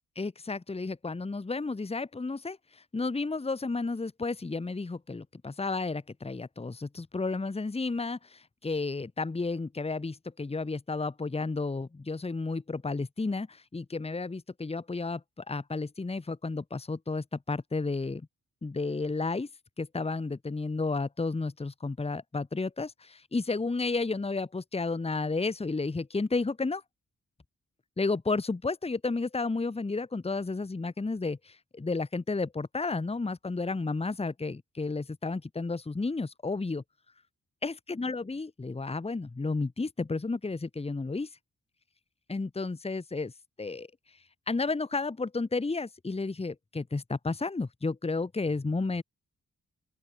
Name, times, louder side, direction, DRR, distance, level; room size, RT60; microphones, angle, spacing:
voice 1, 0.1-18.2 18.6-19.5 19.8-26.8 28.0-36.8 37.6-41.3 42.3-43.3 43.6-43.9 44.5-49.0, left 3 dB, 20° left, 1.3 m, -32 dB
open air
wide cardioid pair, 125°, 31 cm